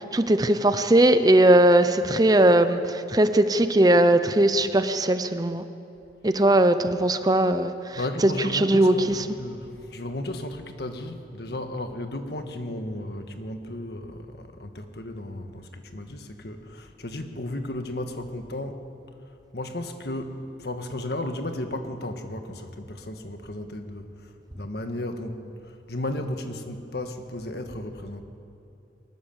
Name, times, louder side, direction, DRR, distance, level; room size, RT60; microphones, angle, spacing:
voice 1, 0.0-5.6 6.2-9.3, right 1 dB, 20° right, 10 dB, 0.7 m, -20 dB
voice 2, 7.9-18.8 19.5-24.1 24.5-25.4 25.7-28.2, left 1 dB, 60° left, 6 dB, 1.6 m, -34 dB
22.0 x 19.5 x 7.3 m, 2.8 s
head